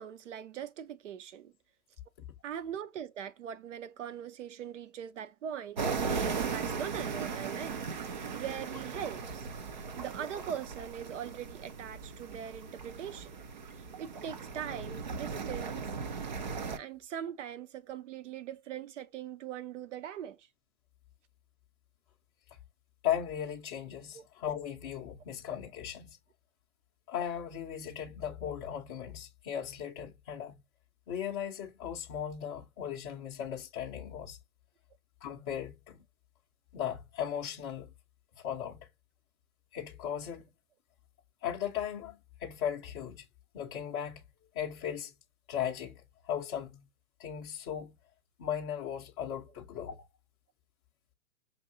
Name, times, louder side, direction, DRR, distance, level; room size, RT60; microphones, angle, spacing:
voice 1, 0.0-1.5 2.4-9.5 9.7-13.4 13.7-15.9 16.8-20.5 24.1-24.2, right 9 dB, 55° right, 0.7 m, -41 dB
sound 1, 5.8-16.8, right 5 dB, 35° right, 0.4 m, -37 dB
voice 2, 23.0-26.2 27.1-30.6 31.1-34.4 35.2-36.0 36.7-37.9 38.4-38.8 39.7-40.5 41.4-43.2 43.5-44.2 44.5-45.1 45.5-46.9 47.2-47.9 48.4-50.1, left 9 dB, 20° left, 0.5 m, -37 dB
5.3 x 2.7 x 2.6 m
hypercardioid pair, 135°, 43 cm